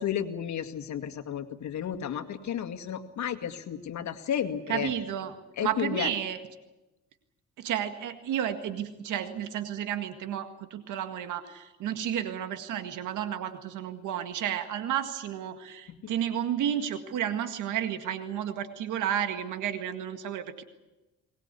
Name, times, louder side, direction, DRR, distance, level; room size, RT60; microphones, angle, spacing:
voice 1, 0.0-4.9 5.6-6.1 15.9-16.0, left 9 dB, 70° left, 7 dB, 2.1 m, -32 dB
voice 2, 4.7-6.4 7.6-20.6, right 10 dB, 85° right, 8 dB, 1.9 m, -32 dB
22.5 x 20.0 x 8.3 m, 1.0 s
cardioid pair, 90°, 30 cm